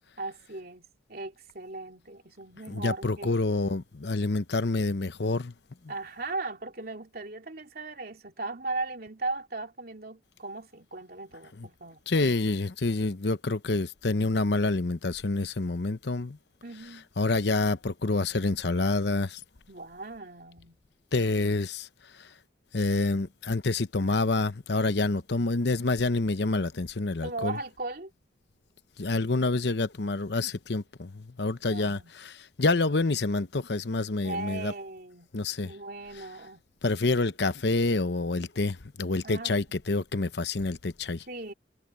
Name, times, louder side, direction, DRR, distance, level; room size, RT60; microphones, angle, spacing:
voice 1, 0.2-3.4 5.9-12.0 16.6-17.0 19.7-20.8 27.2-28.1 31.7-32.1 34.2-35.3 35.6-36.6 39.2-39.6 41.3-41.5, right 3 dB, 50° right, 3.1 m, -38 dB
voice 2, 2.7-5.5 11.6-11.7 12.1-16.4 17.2-19.4 21.1-21.9 22.1-22.3 22.7-27.6 29.0-34.7 35.3-35.7 36.8-41.2, left 3 dB, 60° left, 0.9 m, -27 dB
head